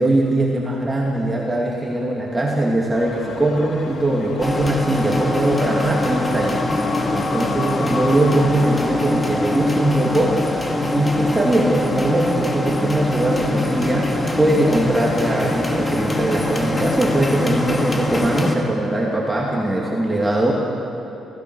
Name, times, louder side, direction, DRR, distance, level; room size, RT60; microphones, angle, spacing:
voice 1, 0.0-6.6 7.1-10.6 10.9-20.5, right 1 dB, 15° right, -3 dB, 2.7 m, -21 dB
sound 1, 2.9-11.7, left 5 dB, 65° left, 1.7 m, -33 dB
sound 2, 4.4-18.6, left 1 dB, 20° left, 2.0 m, -23 dB
24.5 x 16.5 x 6.4 m, 2.8 s
cardioid pair, 90°, 0 cm